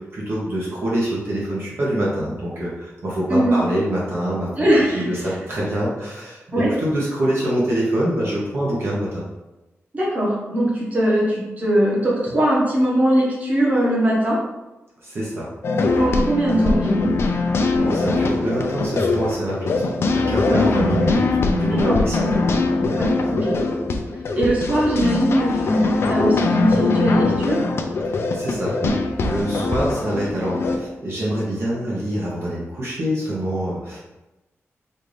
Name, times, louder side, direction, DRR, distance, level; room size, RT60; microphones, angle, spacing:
voice 1, 0.0-4.5 4.9-9.3 15.0-15.5 17.7-22.4 22.8-23.0 28.1-34.0, right 1 dB, 55° right, -6 dB, 0.9 m, -25 dB
voice 2, 3.3-3.6 4.6-5.3 6.5-6.7 9.9-14.4 16.0-17.2 20.5-20.7 21.7-22.0 22.9-23.6 24.3-27.6, right 1 dB, 30° right, -6 dB, 1.1 m, -20 dB
sound 1, 15.6-30.8, left 3 dB, 60° left, 0.4 m, -22 dB
4.3 x 2.5 x 3.3 m, 1.0 s
wide cardioid pair, 170°, 5 cm